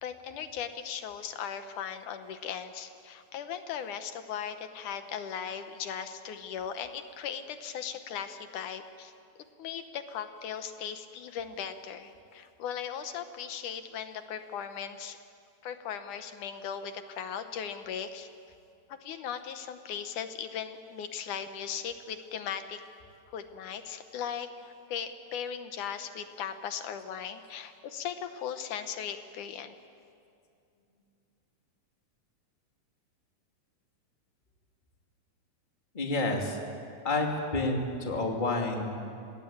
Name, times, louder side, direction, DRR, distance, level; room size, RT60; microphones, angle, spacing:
voice 1, 0.0-9.1 9.6-15.2 15.6-18.3 18.9-22.8 23.3-29.8, left 8 dB, 70° left, 9 dB, 2.3 m, -38 dB
voice 2, 35.9-36.6 37.0-39.0, left 2 dB, 15° left, 1 dB, 2.3 m, -29 dB
26.5 x 19.5 x 8.7 m, 2.5 s
omnidirectional pair, 3.9 m